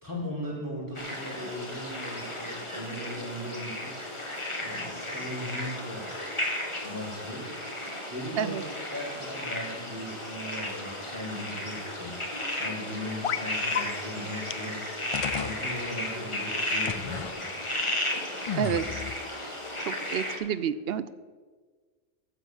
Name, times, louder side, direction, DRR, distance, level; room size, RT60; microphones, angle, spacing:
voice 1, 0.0-3.9 4.6-6.1 6.8-7.5 8.1-8.6 8.9-12.2 12.6-17.5, left 1 dB, 15° right, -5 dB, 4.5 m, -38 dB
sound 1, 0.9-20.4, left 1 dB, 30° left, 1.7 m, -34 dB
sound 2, 13.2-13.5 13.7-13.8 14.5-14.6 15.1-15.6 16.8-17.3 18.5-19.2, left 8 dB, 60° left, 0.3 m, -32 dB
voice 2, 18.6-19.0 19.9-21.1, right 8 dB, 70° right, 14 dB, 0.8 m, -29 dB
14.5 x 7.5 x 6.3 m, 1.5 s
omnidirectional pair, 1.1 m